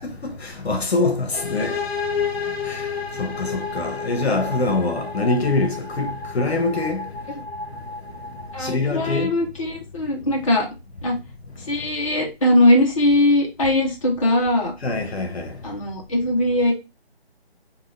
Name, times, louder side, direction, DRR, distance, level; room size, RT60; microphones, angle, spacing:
voice 1, 0.4-1.7 2.7-2.8 3.2-7.0 8.6-9.3 14.8-15.5, left 3 dB, 80° left, 0.8 m, -24 dB
sound 1, 1.3-9.0, left 5 dB, 60° left, 1.4 m, -31 dB
voice 2, 8.5-10.7 11.0-11.2 11.7-14.7 15.6-16.7, left 1 dB, 30° left, 0.6 m, -20 dB
2.8 x 2.3 x 3.3 m
figure-of-eight pair, 155°, 32 cm